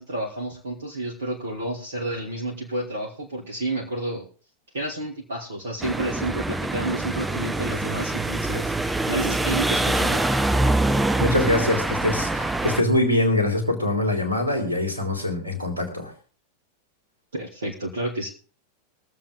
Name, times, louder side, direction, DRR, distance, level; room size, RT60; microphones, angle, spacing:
voice 1, 0.0-4.3 4.7-8.7 9.1-10.2 17.3-18.3, right 2 dB, 65° right, 0 dB, 2.0 m, -30 dB
sound 1, 5.8-12.8, right 2 dB, 10° right, 0.9 m, -24 dB
voice 2, 11.2-16.1, left 1 dB, 85° right, 5 dB, 3.0 m, -23 dB
22.0 x 7.6 x 3.6 m, 0.38 s
figure-of-eight pair, 90°, 0 cm